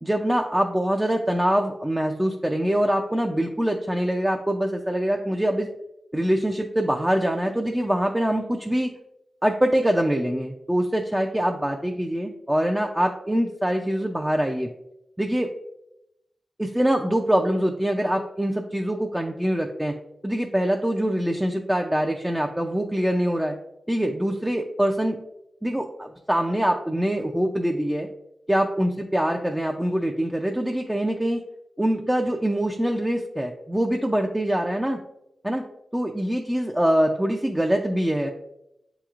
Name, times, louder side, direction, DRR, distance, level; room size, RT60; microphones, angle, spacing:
voice 1, 0.0-5.7 6.1-8.9 9.4-14.7 15.2-15.5 16.6-19.9 20.2-23.6 23.9-25.2 25.6-28.1 28.5-31.4 31.8-35.0 35.4-35.6 35.9-38.3, equal, 10° right, 2 dB, 0.4 m, -24 dB
7.5 x 3.0 x 2.4 m, 0.86 s
cardioid pair, 70°, 0 cm